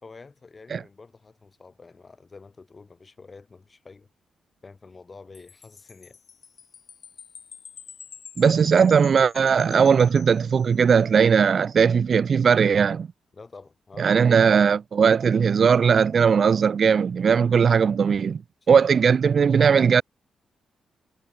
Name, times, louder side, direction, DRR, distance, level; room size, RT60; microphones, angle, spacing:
voice 1, 0.0-4.1 4.6-6.2 13.3-14.3 18.7-18.8, left 4 dB, 30° left, 5.4 m, -47 dB
Wind chime, 5.3-11.0, left 7 dB, 55° left, 5.5 m, -46 dB
voice 2, 8.4-13.1 14.0-18.4 18.7-20.0, right 6 dB, 50° right, 0.5 m, -19 dB
cardioid pair, 120°, 0 cm